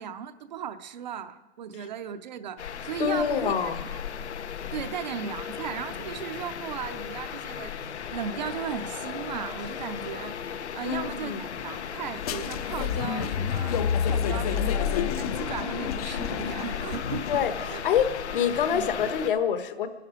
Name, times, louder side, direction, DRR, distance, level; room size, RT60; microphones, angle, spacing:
voice 1, 0.0-3.7 4.7-7.7 8.1-10.4 10.7-17.8 18.7-18.8, right 8 dB, 40° right, 10 dB, 0.6 m, -36 dB
sound 1, 2.6-19.3, left 8 dB, 85° left, 1.1 m, -36 dB
voice 2, 3.0-3.8 10.8-11.5 17.3-18.1 18.3-19.9, left 8 dB, 55° left, 10 dB, 1.2 m, -26 dB
sound 2, 12.2-17.8, left 8 dB, 35° left, 0.6 m, -29 dB
25.5 x 11.5 x 5.0 m, 1.2 s
hypercardioid pair, 155°, 33 cm